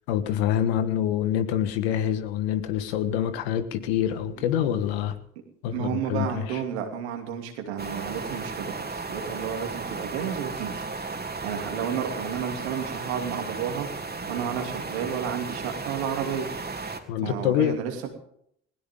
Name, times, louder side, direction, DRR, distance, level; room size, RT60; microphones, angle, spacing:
voice 1, 0.1-5.2 5.6-6.6 17.1-17.7, left 10 dB, 85° left, 10 dB, 1.4 m, -26 dB
voice 2, 5.7-10.8 11.4-13.9 14.3-16.5 17.2-18.1, right 8 dB, 85° right, 3 dB, 2.8 m, -31 dB
sound 1, 7.8-17.0, right 4 dB, 30° right, 2.8 m, -35 dB
19.5 x 17.0 x 3.7 m, 0.69 s
hypercardioid pair, 55°, 31 cm